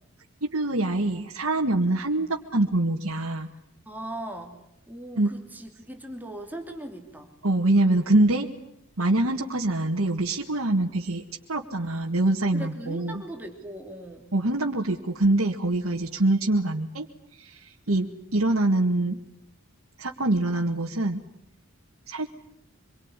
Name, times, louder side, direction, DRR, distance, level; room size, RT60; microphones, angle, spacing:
voice 1, 0.4-3.5 5.2-5.3 7.4-8.5 9.0-11.2 11.5-13.2 14.3-17.1 17.3-18.1 18.3-19.2 20.0-21.2 22.1-22.3, right 2 dB, 75° right, -1 dB, 1.9 m, -24 dB
voice 2, 3.9-4.6 4.9-7.3 12.5-14.3 17.9-18.2, right 1 dB, 10° right, 4 dB, 2.9 m, -39 dB
26.0 x 23.0 x 9.9 m, 0.78 s
head